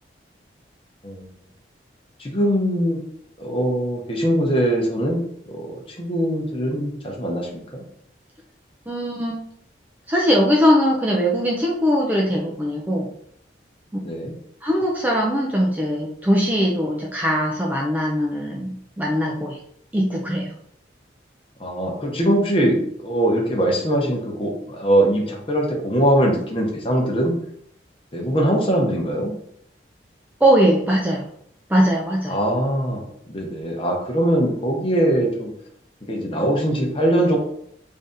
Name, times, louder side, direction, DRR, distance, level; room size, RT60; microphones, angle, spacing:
voice 1, 2.2-3.0 3.4-5.2 5.5-7.8 14.0-14.3 21.6-27.3 28.1-29.3 32.3-33.0 33.3-35.5 36.1-37.4, right 1 dB, 30° left, 0 dB, 0.8 m, -22 dB
voice 2, 8.9-9.4 10.1-13.1 14.6-19.6 19.9-20.5 30.4-31.3 31.7-32.4, equal, 10° right, -2 dB, 0.4 m, -20 dB
3.3 x 2.7 x 3.6 m, 0.69 s
head